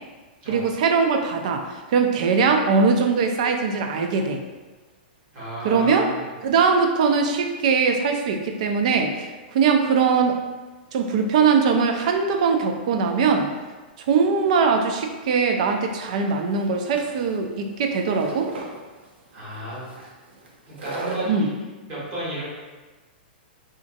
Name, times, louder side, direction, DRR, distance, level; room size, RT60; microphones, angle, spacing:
voice 1, 0.5-1.6 1.9-4.4 5.6-6.1 6.4-10.4 10.9-13.5 14.1-18.5 21.2-21.5, right 5 dB, 40° right, 4 dB, 0.3 m, -21 dB
voice 2, 5.3-6.3 19.3-19.9 20.7-22.4, right 1 dB, 25° right, -8 dB, 1.2 m, -33 dB
sound 1, 15.7-21.3, right 3 dB, 90° right, 0.7 m, -37 dB
3.9 x 2.5 x 2.5 m, 1.3 s
hypercardioid pair, 175°, 6 cm